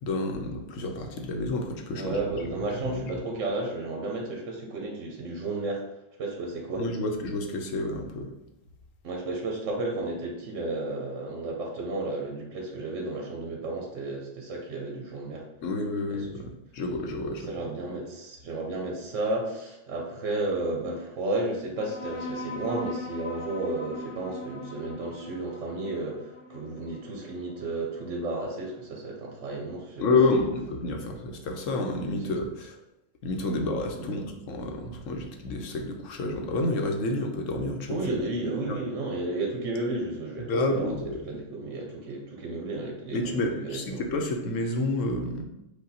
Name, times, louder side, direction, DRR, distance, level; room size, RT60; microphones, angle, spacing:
voice 1, 0.0-2.2 2.9-3.0 6.8-8.3 15.6-16.4 16.7-17.5 30.0-32.8 33.2-38.0 38.7-38.8 40.5-41.2 43.1-45.4, left 2 dB, 85° left, 3 dB, 1.1 m, -29 dB
voice 2, 1.9-5.8 6.2-6.8 9.0-15.4 16.1-16.3 17.4-30.0 30.3-30.5 32.2-32.3 33.9-34.2 37.9-41.0 41.3-44.0, right 2 dB, 80° right, 0 dB, 1.1 m, -33 dB
sound 1, 21.8-28.7, left 1 dB, 55° left, 0.7 m, -40 dB
5.1 x 2.3 x 4.1 m, 0.88 s
omnidirectional pair, 1.3 m